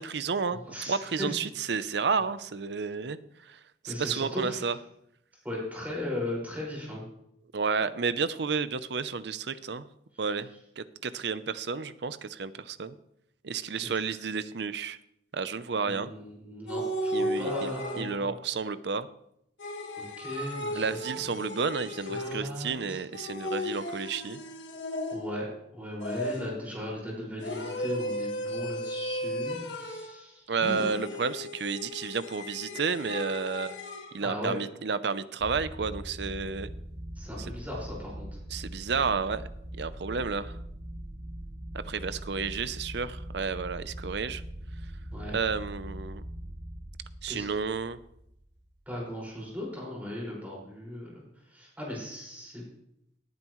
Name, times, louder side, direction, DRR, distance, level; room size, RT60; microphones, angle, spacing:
voice 1, 0.0-3.2 3.4-4.8 7.5-9.8 10.2-10.5 10.8-13.0 13.4-15.0 15.3-16.1 17.1-19.1 20.8-24.4 30.5-33.7 34.1-36.7 37.4-37.5 38.5-39.4 39.7-40.6 41.7-44.4 45.3-46.2 47.2-48.0, right 5 dB, 65° right, 14 dB, 0.6 m, -31 dB
voice 2, 0.7-1.4 3.9-4.7 5.4-7.1 10.1-10.2 13.8-13.9 15.8-18.3 20.0-21.2 22.1-23.0 25.1-30.5 34.2-34.6 37.2-38.3 45.1-45.4 47.3-47.5 48.9-52.6, left 1 dB, 10° right, -4 dB, 5.3 m, -37 dB
sound 1, 16.7-18.4 19.6-22.7 23.1-25.5 26.0-26.7 27.4-30.2 30.6-34.1, equal, 70° left, 1.7 m, -35 dB
sound 2, 35.4-48.7, right 1 dB, 90° right, 4.2 m, -41 dB
18.5 x 9.3 x 3.1 m, 0.78 s
head